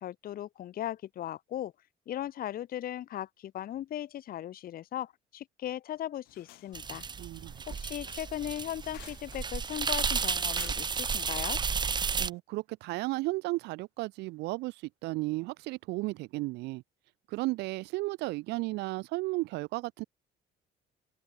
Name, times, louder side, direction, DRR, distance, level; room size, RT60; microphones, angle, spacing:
voice 1, 0.0-1.7 2.1-7.0 7.7-11.6, left 12 dB, 60° left, 1.7 m, -38 dB
sound 1, 6.2-12.4, left 19 dB, 85° left, 2.4 m, -55 dB
sound 2, 6.7-12.3, right 5 dB, 25° right, 0.8 m, -32 dB
voice 2, 7.2-7.6 12.2-16.8 17.3-20.0, right 21 dB, 90° right, 0.7 m, -34 dB
open air
cardioid pair, 110°, 17 cm